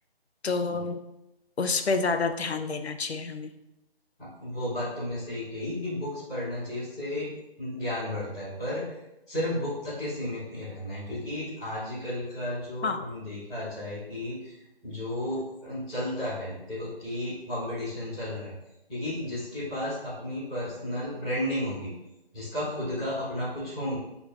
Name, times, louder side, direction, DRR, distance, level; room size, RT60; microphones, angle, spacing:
voice 1, 0.4-1.0 1.6-3.5 12.8-13.0, left 4 dB, 85° left, 8 dB, 0.5 m, -28 dB
voice 2, 4.2-7.3 7.6-8.8 9.3-14.5 14.8-18.5 18.9-21.9 22.3-23.9, left 1 dB, 5° left, -16 dB, 0.9 m, -33 dB
4.8 x 3.8 x 2.4 m, 0.90 s
figure-of-eight pair, 160°, 31 cm